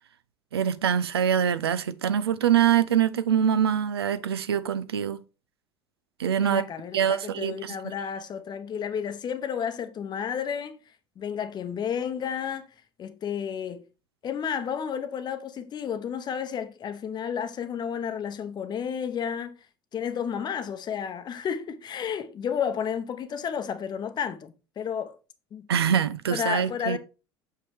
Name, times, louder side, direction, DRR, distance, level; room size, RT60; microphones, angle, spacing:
voice 1, 0.5-5.2 6.2-6.6 6.9-7.7 25.7-27.0, right 9 dB, 75° right, 0.5 m, -24 dB
voice 2, 6.4-12.7 13.0-13.8 14.2-19.6 19.9-25.2 25.5-25.6 26.3-27.0, left 7 dB, 35° left, 0.8 m, -32 dB
6.8 x 5.4 x 3.4 m
figure-of-eight pair, 65°, 13 cm